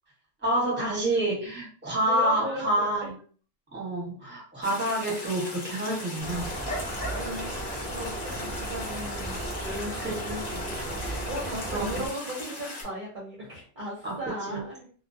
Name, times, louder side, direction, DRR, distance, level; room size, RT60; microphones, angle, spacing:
voice 1, 0.4-3.1 3.7-6.5 10.0-10.1 11.7-12.0 14.0-14.6, right 1 dB, 10° right, -5 dB, 0.9 m, -28 dB
voice 2, 2.0-3.1 7.1-7.5 7.9-14.8, equal, 50° right, -4 dB, 0.7 m, -37 dB
sound 1, 4.6-12.8, left 2 dB, 60° left, 1.0 m, -39 dB
sound 2, 6.2-12.1, right 1 dB, 10° left, 0.5 m, -35 dB
2.2 x 2.2 x 2.6 m, 0.43 s
omnidirectional pair, 1.3 m